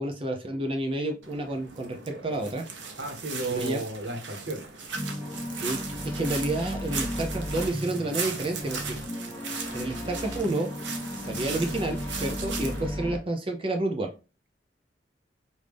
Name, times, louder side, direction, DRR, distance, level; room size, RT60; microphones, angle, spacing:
voice 1, 0.0-2.6 3.5-3.8 5.6-5.8 6.1-8.8 9.7-10.7 11.1-14.1, right 2 dB, 30° right, 3 dB, 0.6 m, -30 dB
sound 1, 1.2-12.9, right 5 dB, 85° right, 0.9 m, -38 dB
voice 2, 3.0-4.6, right 2 dB, 65° right, 4 dB, 1.2 m, -33 dB
sound 2, 4.9-13.2, left 1 dB, 10° left, 1.5 m, -35 dB
5.0 x 2.6 x 3.4 m, 0.31 s
head